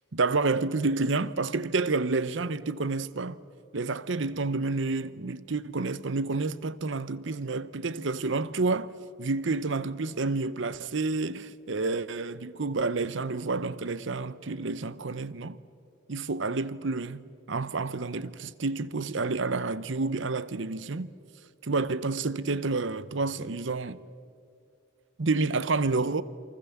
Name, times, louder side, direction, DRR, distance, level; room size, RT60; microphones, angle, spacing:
voice 1, 0.1-3.4 3.7-8.9 9.2-15.6 16.1-21.1 21.6-24.0 25.2-26.2, right 3 dB, 70° right, 0.8 m, -29 dB
27.5 x 24.5 x 7.2 m
head